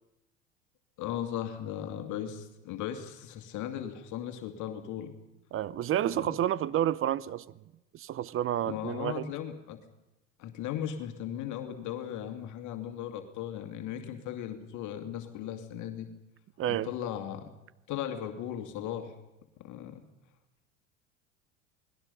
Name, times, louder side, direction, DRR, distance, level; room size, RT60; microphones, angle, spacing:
voice 1, 1.0-5.1 6.1-6.4 8.7-9.8 10.4-16.1 16.7-17.5 17.9-19.1 19.6-20.0, left 10 dB, 50° left, 2.5 m, -37 dB
voice 2, 5.5-7.4 7.9-9.3 16.6-16.9, right 11 dB, 35° right, 0.8 m, -30 dB
28.0 x 20.0 x 5.5 m
hypercardioid pair, 80°, 38 cm